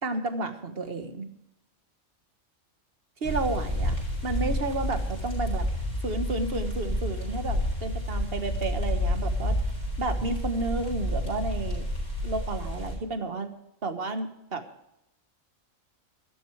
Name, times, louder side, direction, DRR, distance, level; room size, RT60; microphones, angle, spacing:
voice 1, 0.0-1.3 3.2-3.9 4.2-5.7 6.0-9.6 10.0-11.9 12.2-13.5 13.8-14.6, right 3 dB, 50° right, 8 dB, 1.6 m, -31 dB
sound 1, 3.2-13.0, left 1 dB, 50° left, 7.1 m, -30 dB
13.5 x 13.0 x 4.8 m, 0.81 s
omnidirectional pair, 1.3 m